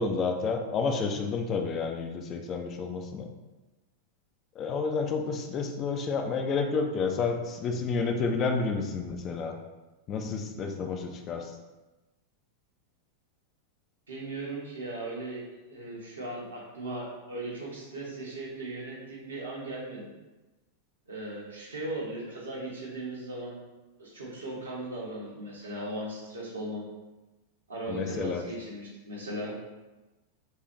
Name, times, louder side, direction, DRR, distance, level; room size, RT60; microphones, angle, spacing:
voice 1, 0.0-3.3 4.6-9.6 10.1-11.5 27.9-28.4, left 4 dB, 30° left, 4 dB, 0.4 m, -30 dB
voice 2, 14.1-20.1 21.1-23.6 24.0-26.8 27.7-29.5, right 1 dB, 75° right, -5 dB, 1.1 m, -38 dB
4.5 x 2.4 x 3.1 m, 1.1 s
figure-of-eight pair, 90°, 0 cm